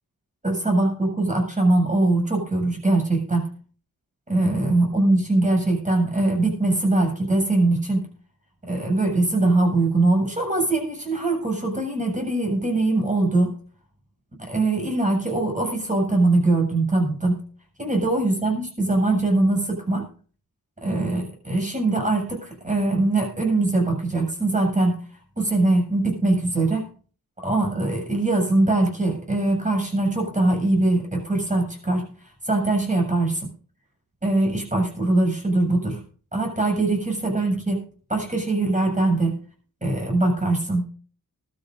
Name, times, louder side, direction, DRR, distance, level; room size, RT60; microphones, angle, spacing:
voice 1, 0.4-3.5 4.3-8.1 8.6-13.5 14.5-17.4 17.8-20.1 20.8-25.0 25.4-26.9 27.4-32.1 32.4-33.4 34.2-36.0 36.3-37.8 38.1-39.4 39.8-40.9, right 2 dB, 20° right, 2 dB, 7.4 m, -22 dB
21.0 x 13.0 x 2.7 m, 0.41 s
wide cardioid pair, 75°, 34 cm